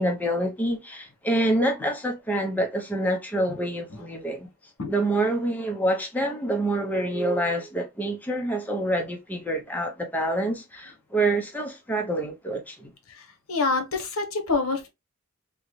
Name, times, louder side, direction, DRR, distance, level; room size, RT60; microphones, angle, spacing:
voice 1, 0.0-4.5 4.9-12.9, right 1 dB, 10° left, 0.5 m, -27 dB
voice 2, 13.5-14.9, left 3 dB, 80° left, 0.9 m, -26 dB
3.7 x 2.1 x 3.0 m
head